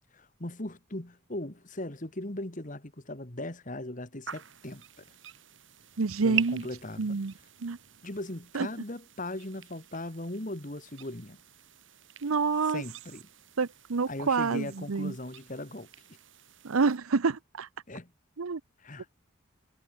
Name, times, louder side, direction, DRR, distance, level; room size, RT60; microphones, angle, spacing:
voice 1, 0.1-5.0 6.2-7.2 8.0-11.4 12.7-13.2 14.1-15.9 17.9-18.1 18.8-19.1, left 1 dB, 40° left, 2.1 m, -39 dB
sound 1, 4.3-17.0, right 10 dB, 65° right, 4.1 m, -44 dB
voice 2, 6.0-6.7 7.0-7.3 7.6-7.8 8.5-8.7 12.2-12.8 13.6-15.1 16.6-17.7 18.4-18.6, right 4 dB, 90° right, 0.7 m, -27 dB
head